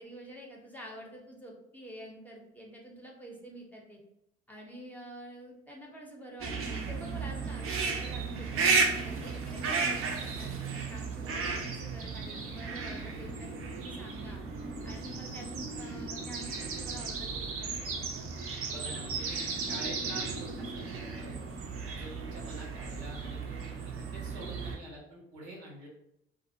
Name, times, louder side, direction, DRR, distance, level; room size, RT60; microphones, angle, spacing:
voice 1, 0.0-4.0 4.5-8.7 9.0-14.4 14.8-18.1, equal, 5° left, -2 dB, 0.7 m, -48 dB
sound 1, 6.4-24.8, right 4 dB, 45° right, 0.5 m, -34 dB
voice 2, 11.2-11.6 18.7-21.4 21.9-25.9, right 1 dB, 85° right, -1 dB, 0.7 m, -46 dB
2.3 x 2.0 x 2.7 m, 0.82 s
hypercardioid pair, 55°, 32 cm